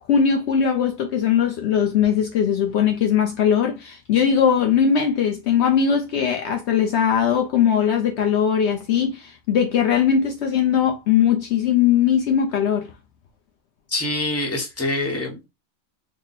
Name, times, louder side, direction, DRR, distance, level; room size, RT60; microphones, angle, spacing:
voice 1, 0.1-12.9, left 8 dB, 70° left, 0.8 m, -20 dB
voice 2, 13.9-15.4, left 2 dB, 15° left, 0.8 m, -25 dB
3.7 x 2.0 x 3.9 m
omnidirectional pair, 1.3 m